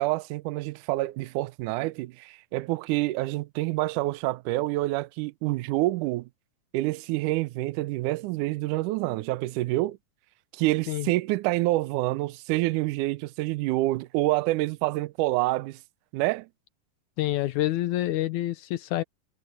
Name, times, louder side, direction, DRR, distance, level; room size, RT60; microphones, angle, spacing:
voice 1, 0.0-6.3 6.7-10.0 10.5-15.8 16.1-16.5, right 18 dB, 80° right, 2.0 m, -27 dB
voice 2, 17.2-19.0, left 15 dB, 75° left, 1.9 m, -27 dB
omnidirectional pair, 3.9 m